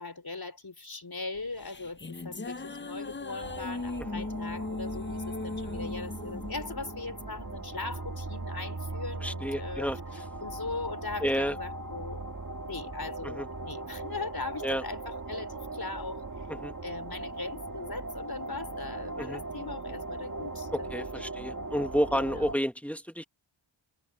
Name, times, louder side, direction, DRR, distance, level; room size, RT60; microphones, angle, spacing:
voice 1, 0.0-9.9 10.1-12.2 12.6-16.2 16.8-21.8 22.1-22.6, left 3 dB, 50° left, 4.1 m, -40 dB
sound 1, 1.4-7.9, left 3 dB, 25° left, 0.7 m, -38 dB
sound 2, 3.4-22.5, right 2 dB, 40° right, 2.1 m, -39 dB
voice 2, 9.2-10.0 11.2-11.6 13.2-13.5 14.6-14.8 16.5-16.7 19.2-19.4 20.7-23.2, equal, 5° left, 1.7 m, -30 dB
wide cardioid pair, 60°, 47 cm